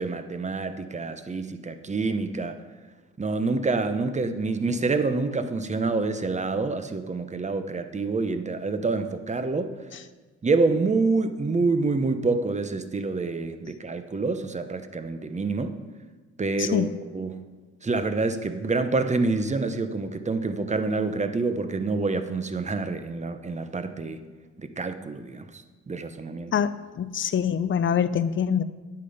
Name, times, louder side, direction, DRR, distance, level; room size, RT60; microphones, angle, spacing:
voice 1, 0.0-2.6 3.2-9.8 10.4-15.8 16.4-16.9 17.1-17.4 17.8-24.2 24.6-26.5, right 3 dB, 25° right, 9 dB, 0.9 m, -27 dB
voice 2, 16.6-16.9 26.5-28.6, left 8 dB, 40° left, 13 dB, 0.6 m, -25 dB
9.9 x 8.3 x 5.5 m, 1.3 s
cardioid pair, 90°, 30 cm